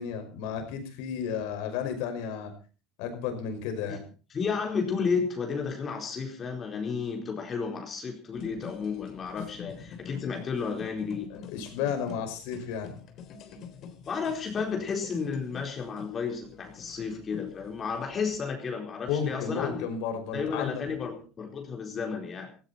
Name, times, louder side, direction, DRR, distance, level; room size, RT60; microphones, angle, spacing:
voice 1, 0.0-2.6 3.0-4.0 11.3-12.9 19.1-20.8, left 7 dB, 75° left, 6 dB, 5.6 m, -33 dB
voice 2, 4.3-11.3 14.1-19.8 20.3-22.5, left 5 dB, 30° left, 2 dB, 4.2 m, -32 dB
sound 1, 8.3-18.4, left 8 dB, 50° left, 3.7 m, -46 dB
17.5 x 16.0 x 4.3 m, 0.37 s
supercardioid pair, 125°, 0 cm